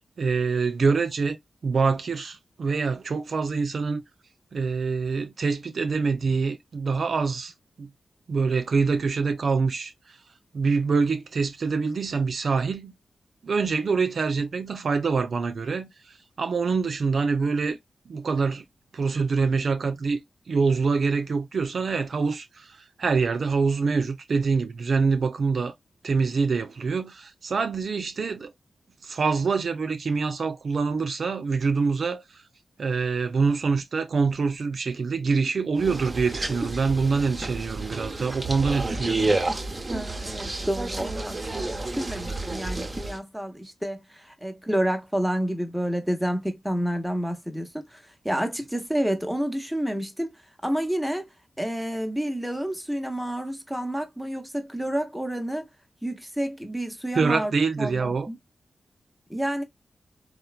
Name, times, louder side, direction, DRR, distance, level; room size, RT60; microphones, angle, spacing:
voice 1, 0.2-1.4 1.6-4.0 4.5-7.5 7.8-7.9 8.3-10.2 10.5-12.9 13.4-17.8 18.1-18.6 18.9-20.2 20.5-25.7 26.0-28.5 29.0-32.4 32.8-39.4 57.1-58.3, right 4 dB, 70° right, 0.4 m, -25 dB
sound 1, 35.8-43.2, right 2 dB, 30° right, 0.7 m, -30 dB
voice 2, 39.9-50.3 50.6-51.3 51.6-55.7 56.0-57.5 57.8-58.4 59.3-59.6, equal, ahead, 0.8 m, -29 dB
3.0 x 2.1 x 2.3 m
cardioid pair, 50°, 0 cm